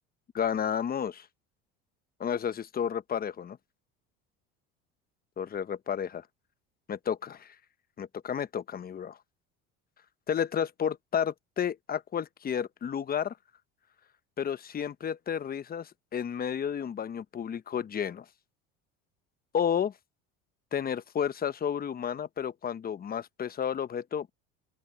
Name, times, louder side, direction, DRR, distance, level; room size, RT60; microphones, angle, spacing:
voice 1, 0.3-1.3 2.2-3.6 5.4-6.2 6.9-7.5 8.0-9.2 10.3-13.3 14.4-18.2 19.5-19.9 20.7-24.3, left 8 dB, 30° left, 0.9 m, -31 dB
open air
supercardioid pair, 100°, 31 cm